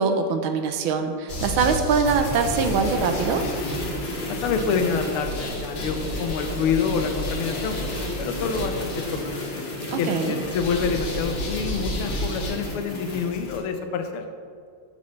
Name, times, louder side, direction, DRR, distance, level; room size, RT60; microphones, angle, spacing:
voice 1, 0.0-3.4 9.9-10.4, right 5 dB, 75° right, 6 dB, 1.4 m, -23 dB
sound 1, 1.3-13.6, left 1 dB, 55° left, 2.2 m, -30 dB
voice 2, 4.3-7.8 8.2-9.4 10.0-14.2, left 5 dB, 85° left, 6 dB, 1.6 m, -27 dB
9.9 x 7.1 x 3.2 m, 2.2 s
omnidirectional pair, 2.4 m